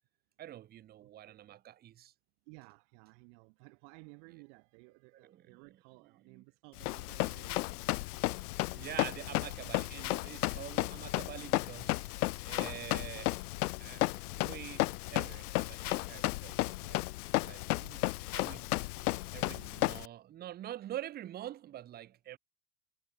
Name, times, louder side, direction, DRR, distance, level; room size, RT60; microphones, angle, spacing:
voice 1, 0.4-2.1 5.2-5.6 6.3-6.4 8.7-13.3 13.8-17.1 17.4-17.6 18.3-18.7 19.3-22.4, right 12 dB, 20° right, 0.9 m, -46 dB
voice 2, 1.0-1.5 2.5-8.4 17.1-18.2 19.2-20.2, right 40 dB or more, 50° right, 2.3 m, -58 dB
Run, 6.8-20.1, left 19 dB, 90° left, 0.6 m, -34 dB
supercardioid pair, 145°, 43 cm